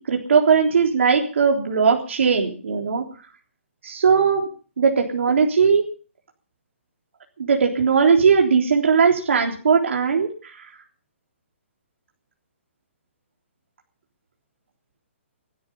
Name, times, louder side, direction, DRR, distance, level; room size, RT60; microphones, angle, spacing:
voice 1, 0.1-3.0 3.8-4.5 4.8-5.8 7.4-10.3, right 6 dB, 70° right, 0 dB, 3.7 m, -18 dB
19.0 x 13.0 x 5.5 m, 0.40 s
hypercardioid pair, 170°, 7 cm